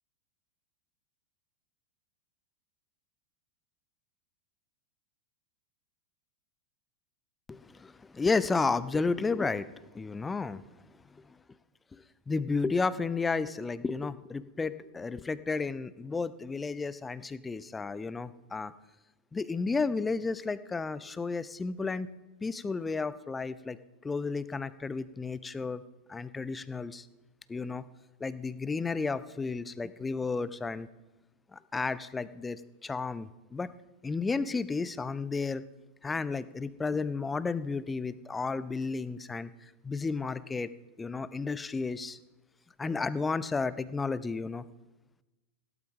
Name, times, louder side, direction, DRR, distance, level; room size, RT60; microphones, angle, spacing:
voice 1, 7.5-9.7 9.9-10.7 11.1-11.4 11.9-18.7 19.3-22.1 22.4-23.8 24.0-25.8 26.1-27.1 27.5-27.9 28.2-30.9 31.5-33.7 34.0-35.6 36.0-40.7 41.0-42.2 42.8-44.6, left 4 dB, 15° left, 17 dB, 0.5 m, -32 dB
17.0 x 12.0 x 3.7 m, 1.1 s
figure-of-eight pair, 90°, 0 cm